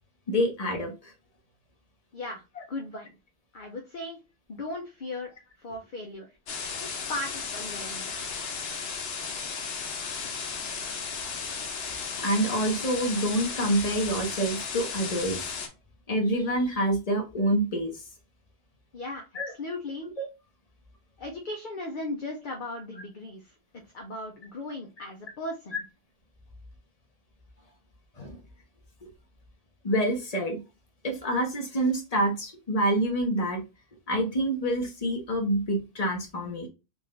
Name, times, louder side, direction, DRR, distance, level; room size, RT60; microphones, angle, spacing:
voice 1, 0.3-1.1 12.2-15.4 16.1-17.9 19.3-19.5 20.2-20.3 28.2-28.4 29.0-29.1 29.8-30.6 31.0-33.6 34.1-36.7, right 1 dB, 40° left, 2 dB, 1.1 m, -27 dB
voice 2, 2.1-2.4 2.7-3.2 3.5-4.2 4.5-5.3 5.6-6.4 6.8-8.1 18.9-19.2 19.6-20.1 21.2-23.5 23.8-25.8, left 2 dB, 55° left, 2 dB, 0.8 m, -37 dB
sound 1, 6.5-15.7, left 5 dB, 75° left, 1.0 m, -35 dB
3.8 x 2.5 x 3.1 m, 0.27 s
omnidirectional pair, 1.1 m